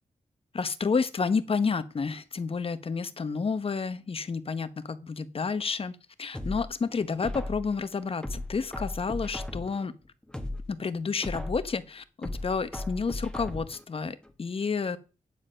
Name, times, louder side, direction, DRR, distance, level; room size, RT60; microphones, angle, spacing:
voice 1, 0.5-9.9 10.7-15.0, left 5 dB, 45° left, 1.0 m, -30 dB
sound 1, 6.3-7.8 8.2-9.8 10.2-11.8 12.2-13.8 14.2-14.3, left 1 dB, 5° left, 1.5 m, -36 dB
9.4 x 7.6 x 5.7 m
wide cardioid pair, 110°, 13 cm